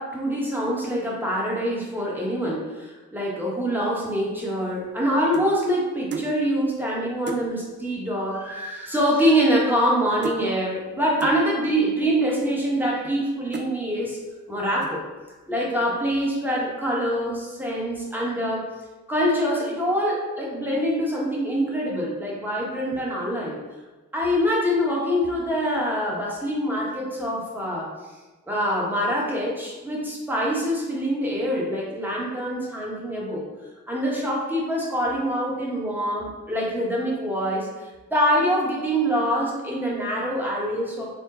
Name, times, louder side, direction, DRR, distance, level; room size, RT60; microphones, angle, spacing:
voice 1, 0.0-14.2 14.5-15.0 15.5-18.7 19.1-23.6 24.1-27.9 28.5-33.4 33.9-37.7 38.1-41.1, equal, 5° right, -4 dB, 1.0 m, -25 dB
sound 1, 4.4-5.6 6.1-6.4 6.8-6.9 7.3-7.5 8.4-8.5 8.7-9.0 9.3-10.0 10.2-10.5 11.2-11.4 12.1-12.2 12.8-13.2 13.5-13.8 14.3-14.5 14.8-15.2, right 4 dB, 40° right, 0.4 m, -34 dB
4.4 x 2.2 x 4.1 m, 1.2 s
wide cardioid pair, 125°, 29 cm